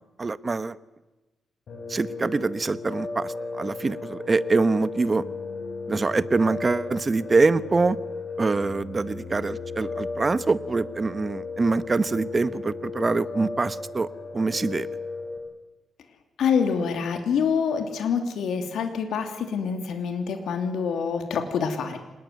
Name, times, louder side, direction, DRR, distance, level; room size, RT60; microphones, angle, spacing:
voice 1, 0.2-0.7 1.9-5.2 5.9-8.0 8.4-14.1 14.3-14.9, right 3 dB, 30° right, 15 dB, 1.0 m, -24 dB
Piano, 1.7-15.4, left 3 dB, 60° left, 7.4 m, -35 dB
voice 2, 16.4-22.0, left 6 dB, 85° left, 6 dB, 2.9 m, -26 dB
26.5 x 20.5 x 9.4 m, 1.1 s
cardioid pair, 110°, 0 cm